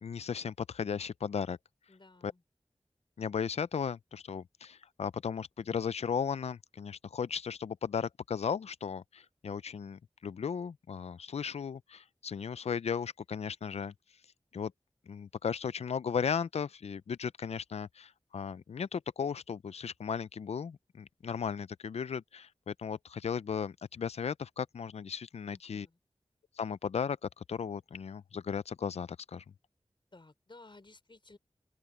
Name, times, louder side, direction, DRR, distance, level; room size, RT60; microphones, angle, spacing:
voice 1, 0.0-1.6 2.2-2.3 3.2-13.9 14.5-14.7 15.1-25.9 26.6-29.4, left 6 dB, 85° left, 0.4 m, -36 dB
voice 2, 1.9-2.4 25.4-26.0 30.1-31.4, left 2 dB, 50° left, 4.1 m, -56 dB
open air
wide cardioid pair, 45°, 11 cm